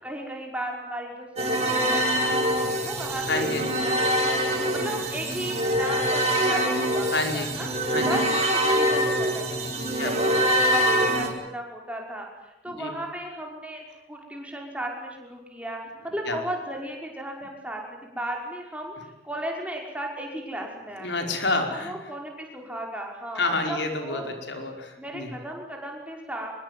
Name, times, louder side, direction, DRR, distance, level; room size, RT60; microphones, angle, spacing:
voice 1, 0.0-3.5 3.8-7.1 7.3-7.7 8.1-12.3 12.6-18.9 19.2-21.3 21.7-24.3 25.0-26.5, right 1 dB, 5° right, 0 dB, 5.8 m, -35 dB
sound 1, 1.4-11.3, equal, 35° right, 5.7 m, -24 dB
voice 2, 3.3-3.7 7.1-7.5 7.9-8.2 10.0-10.3 12.6-12.9 16.3-16.4 21.0-21.9 23.3-25.3, left 3 dB, 75° left, 4 dB, 4.9 m, -29 dB
25.5 x 23.0 x 9.6 m, 0.93 s
head